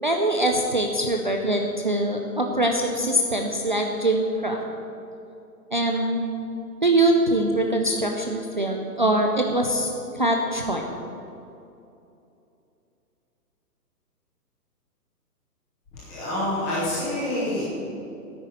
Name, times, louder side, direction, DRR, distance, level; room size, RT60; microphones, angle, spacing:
voice 1, 0.0-4.6 5.7-6.2 6.8-9.9 10.2-10.8, right 1 dB, 30° right, 2 dB, 0.5 m, -23 dB
voice 2, 15.9-17.6, left 1 dB, 5° left, -10 dB, 0.7 m, -27 dB
10.0 x 9.1 x 8.2 m, 2.7 s
hypercardioid pair, 170°, 48 cm